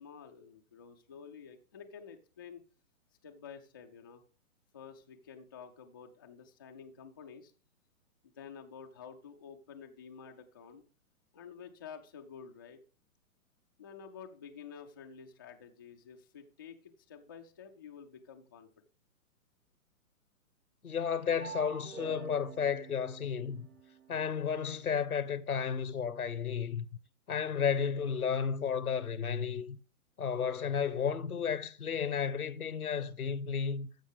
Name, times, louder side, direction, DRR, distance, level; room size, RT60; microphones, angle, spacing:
voice 1, 0.0-2.6 3.2-4.2 4.7-7.5 8.2-10.8 11.3-12.8 13.8-18.7, left 6 dB, 20° left, 0.3 m, -50 dB
voice 2, 20.8-23.7 24.1-26.8 27.3-29.8 30.2-33.9, left 7 dB, 90° left, 1.0 m, -33 dB
sound 1, 21.4-24.3, right 5 dB, 85° right, 2.2 m, -47 dB
14.5 x 5.4 x 3.4 m
hypercardioid pair, 130°, 42 cm